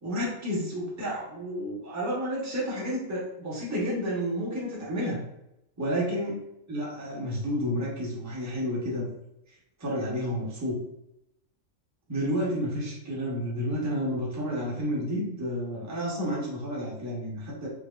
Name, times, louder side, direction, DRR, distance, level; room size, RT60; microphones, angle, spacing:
voice 1, 0.0-5.2 5.8-6.3 6.7-9.1 9.8-10.8 12.1-17.7, equal, 15° right, -5 dB, 0.9 m, -30 dB
5.2 x 2.9 x 2.4 m, 0.85 s
omnidirectional pair, 1.5 m